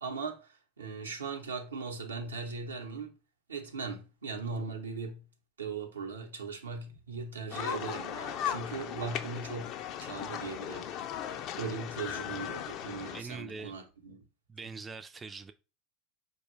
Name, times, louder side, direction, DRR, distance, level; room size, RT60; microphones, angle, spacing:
voice 1, 0.0-3.1 3.5-5.2 5.6-9.7 10.0-10.9 11.6-14.2, right 4 dB, 90° right, 0.7 m, -39 dB
sound 1, 7.5-13.2, left 9 dB, 50° left, 0.4 m, -37 dB
voice 2, 13.1-13.7 14.5-15.5, right 4 dB, 20° right, 0.3 m, -43 dB
4.4 x 2.2 x 3.1 m
hypercardioid pair, 80°, 0 cm